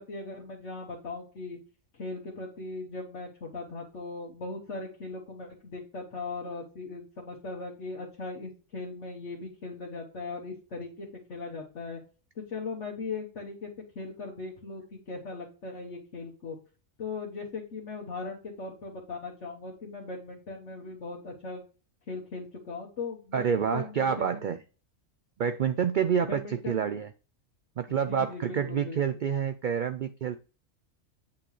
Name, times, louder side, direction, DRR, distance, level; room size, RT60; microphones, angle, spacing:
voice 1, 0.0-1.6 1.9-12.0 12.3-13.7 13.9-16.6 17.0-21.6 22.1-24.3 26.2-26.9 27.9-29.0, left 3 dB, 60° left, -2 dB, 1.6 m, -39 dB
voice 2, 23.3-24.6 25.4-26.4 26.7-27.1 27.8-30.4, right 7 dB, 75° right, 10 dB, 0.4 m, -28 dB
8.6 x 5.8 x 3.2 m, 0.36 s
omnidirectional pair, 1.4 m